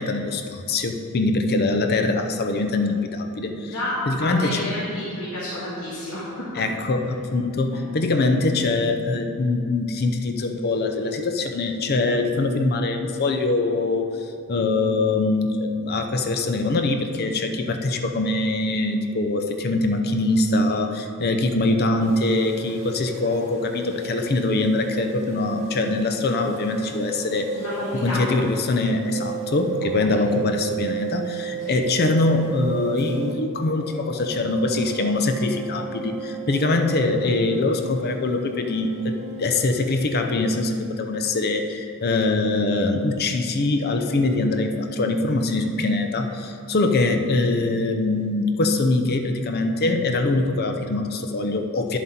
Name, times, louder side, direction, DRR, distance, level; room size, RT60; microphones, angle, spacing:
voice 1, 0.0-3.7 4.1-4.7 6.6-14.2 14.5-27.6 28.0-52.0, left 2 dB, 45° left, 6 dB, 0.6 m, -23 dB
voice 2, 3.4-6.6 7.7-7.9 27.6-28.2 30.0-30.2 31.6-31.8, left 1 dB, 80° left, -8 dB, 2.0 m, -31 dB
sound 1, 22.0-28.6 28.9-33.3 33.6-39.8, right 6 dB, 30° right, 1.3 m, -34 dB
10.5 x 7.3 x 4.3 m, 2.5 s
head